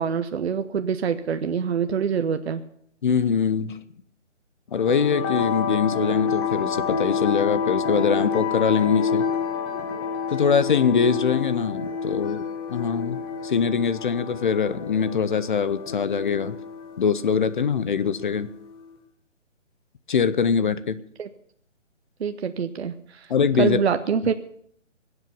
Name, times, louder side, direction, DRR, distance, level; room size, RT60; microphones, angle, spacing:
voice 1, 0.0-2.6 21.2-21.3 22.2-23.3 23.6-24.3, right 7 dB, 60° right, 9 dB, 0.9 m, -25 dB
voice 2, 3.0-3.8 4.7-9.3 10.3-12.4 12.7-16.6 17.0-18.5 20.1-21.0 23.3-23.8, left 6 dB, 40° left, 14 dB, 0.7 m, -23 dB
sound 1, 4.7-18.8, left 5 dB, 20° left, 1.4 m, -29 dB
21.0 x 8.1 x 6.9 m, 0.65 s
hypercardioid pair, 160°, 37 cm